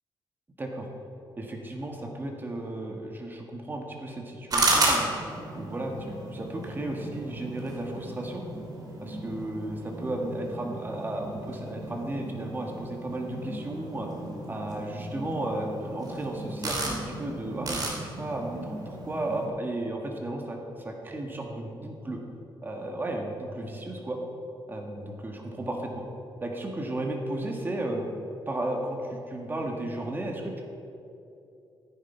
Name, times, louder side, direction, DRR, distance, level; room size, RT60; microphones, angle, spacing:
voice 1, 1.4-5.1 5.5-8.4 9.0-14.1 14.5-22.2 22.6-24.2 24.7-26.0 26.4-28.1 28.5-30.6, right 1 dB, 25° right, 1 dB, 1.7 m, -34 dB
sound 1, 4.5-19.5, right 2 dB, 50° right, 3.0 m, -33 dB
15.0 x 9.8 x 4.6 m, 2.8 s
cardioid pair, 115°, 9 cm